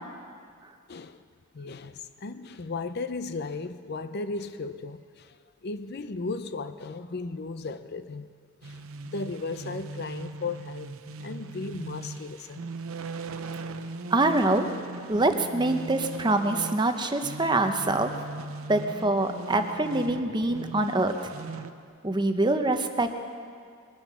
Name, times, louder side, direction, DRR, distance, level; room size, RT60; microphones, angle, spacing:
voice 1, 0.9-1.2 1.5-5.4 5.6-8.3 8.6-8.8 9.1-10.9 11.2-12.6, left 3 dB, 50° left, 11 dB, 0.5 m, -35 dB
sound 1, 8.6-21.7, right 3 dB, 80° right, 0.7 m, -39 dB
voice 2, 14.1-14.7 15.1-18.1 18.7-21.3 22.0-23.1, right 2 dB, 20° right, 7 dB, 0.8 m, -25 dB
21.5 x 10.5 x 6.2 m, 2.2 s
head